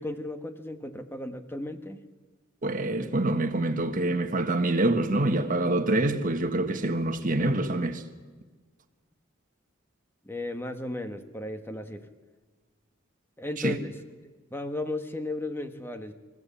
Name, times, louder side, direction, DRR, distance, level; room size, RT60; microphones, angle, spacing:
voice 1, 0.0-2.0 10.2-12.0 13.4-13.9 14.2-16.1, left 2 dB, 10° left, 1.3 m, -35 dB
voice 2, 2.6-8.0 13.6-13.8, right 2 dB, 40° right, 1.5 m, -26 dB
25.5 x 15.0 x 8.5 m
head